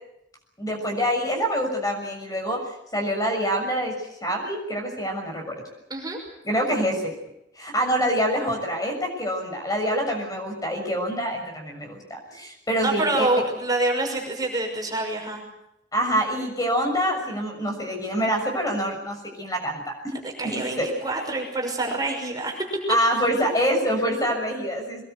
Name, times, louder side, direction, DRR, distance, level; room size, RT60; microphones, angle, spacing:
voice 1, 0.6-2.6 2.9-3.9 4.2-5.5 6.4-7.1 7.6-13.3 15.9-20.1 20.4-20.8 22.9-25.0, equal, 20° left, 2 dB, 6.5 m, -26 dB
voice 2, 12.8-15.4 20.4-22.6, right 2 dB, 20° right, 1 dB, 5.9 m, -26 dB
23.5 x 21.0 x 8.1 m, 0.83 s
head